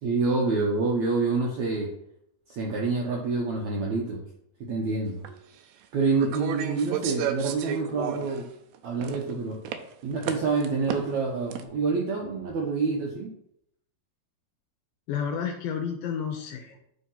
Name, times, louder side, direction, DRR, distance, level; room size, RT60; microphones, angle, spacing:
voice 1, 0.0-1.9 2.5-4.2 4.6-5.3 5.9-8.5 8.8-9.6 10.0-13.3, right 4 dB, 70° right, -1 dB, 1.7 m, -27 dB
sound 1, 5.3-5.4 6.2-8.4 8.8-9.3 9.7-9.8 10.2-11.2 11.5-11.6, right 9 dB, 90° right, 2.7 m, -32 dB
voice 2, 15.1-16.8, left 7 dB, 75° left, 5 dB, 2.2 m, -31 dB
10.0 x 3.7 x 5.7 m, 0.72 s
omnidirectional pair, 4.7 m